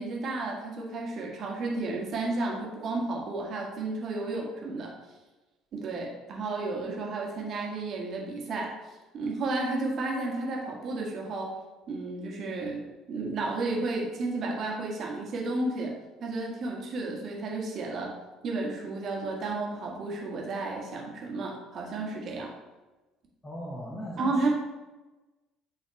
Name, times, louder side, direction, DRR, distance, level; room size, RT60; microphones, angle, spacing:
voice 1, 0.0-4.9 5.7-8.7 9.1-11.5 11.9-12.8 13.1-15.9 16.2-18.1 18.4-22.5 24.2-24.5, right 3 dB, 50° right, -1 dB, 1.6 m, -32 dB
voice 2, 23.4-24.5, left 1 dB, 20° left, -4 dB, 1.2 m, -38 dB
9.8 x 4.0 x 3.3 m, 1.1 s
figure-of-eight pair, 55°, 0 cm